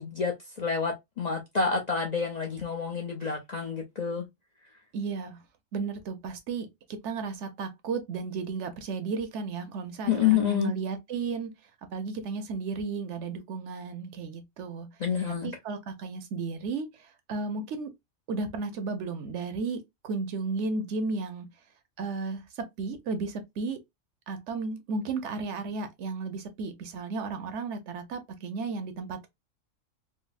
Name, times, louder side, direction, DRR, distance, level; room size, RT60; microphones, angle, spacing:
voice 1, 0.0-4.2 10.1-10.8 15.0-15.5, left 7 dB, 50° left, 0.5 m, -28 dB
voice 2, 4.9-5.4 5.7-6.7 7.0-11.5 11.9-14.9 15.3-17.9 18.3-21.5 22.0-22.4 22.8-23.8 24.3-29.3, right 4 dB, 70° right, 0.9 m, -34 dB
3.9 x 2.0 x 2.4 m
omnidirectional pair, 1.3 m